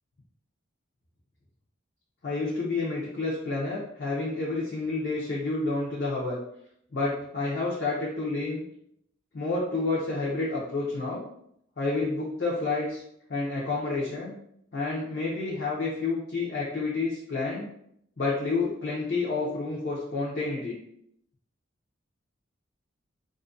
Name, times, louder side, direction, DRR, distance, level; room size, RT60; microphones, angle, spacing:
voice 1, 2.2-6.4 6.9-8.6 9.3-11.2 11.8-13.0 13.3-14.4 14.7-17.7 18.2-20.7, left 3 dB, 50° left, -7 dB, 0.5 m, -29 dB
2.4 x 2.2 x 2.5 m, 0.71 s
head